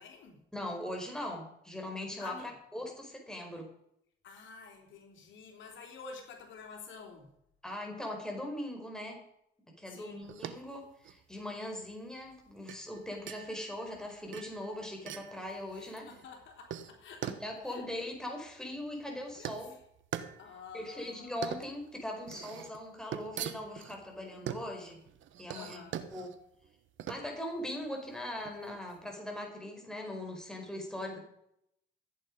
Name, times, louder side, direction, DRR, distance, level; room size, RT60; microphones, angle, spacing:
voice 1, 0.0-0.4 2.2-2.5 4.2-7.3 9.9-10.3 15.7-18.1 19.4-19.7 20.4-21.4 25.5-26.0, left 5 dB, 70° left, 2 dB, 3.5 m, -49 dB
voice 2, 0.5-3.7 7.6-9.2 9.8-16.1 17.2-19.7 20.7-25.0 25.4-25.8 26.1-26.4 27.1-31.2, left 1 dB, 5° left, 1 dB, 4.5 m, -40 dB
sound 1, 10.2-29.0, right 10 dB, 75° right, 1.2 m, -44 dB
14.5 x 9.4 x 5.2 m, 0.76 s
cardioid pair, 90°, 20 cm